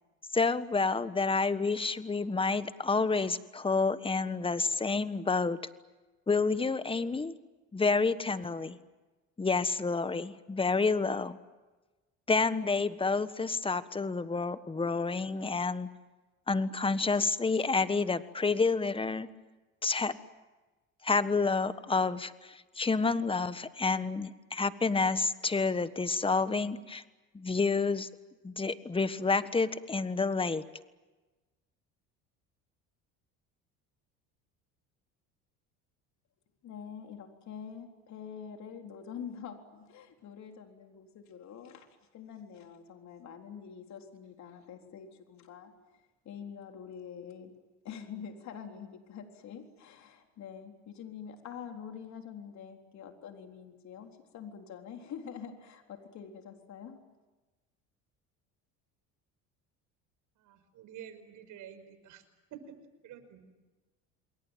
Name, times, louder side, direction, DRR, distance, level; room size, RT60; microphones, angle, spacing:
voice 1, 0.3-5.6 6.3-7.3 7.7-8.8 9.4-11.4 12.3-15.9 16.5-19.3 19.8-20.1 21.0-27.0 27.3-28.1 28.4-30.6, left 4 dB, 15° left, 13 dB, 1.4 m, -29 dB
voice 2, 36.6-41.9 42.1-47.5 47.8-57.0, left 7 dB, 55° left, 4 dB, 3.9 m, -46 dB
voice 3, 60.4-62.2 63.0-63.5, right 9 dB, 65° right, 10 dB, 5.4 m, -50 dB
28.0 x 22.0 x 9.2 m, 1.2 s
supercardioid pair, 95°, 33 cm